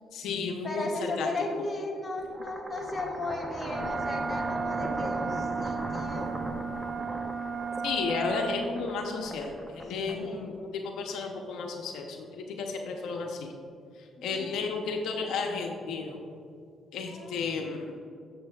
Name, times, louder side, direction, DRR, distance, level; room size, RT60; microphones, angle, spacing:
voice 1, 0.1-0.9 1.2-1.3 1.5-1.6 7.8-13.5 14.2-16.2 16.9-18.0, left 4 dB, 85° left, 2 dB, 0.7 m, -33 dB
voice 2, 0.6-6.3 10.0-10.6 14.2-14.9 17.1-17.4, left 2 dB, 25° left, -2 dB, 1.8 m, -36 dB
sound 1, 2.2-10.5, right 1 dB, 10° right, 0.8 m, -38 dB
Wind instrument woodwind instrument, 3.7-8.6, right 5 dB, 45° right, 1.3 m, -34 dB
11.0 x 7.7 x 2.4 m, 2.4 s
cardioid pair, 90°, 0 cm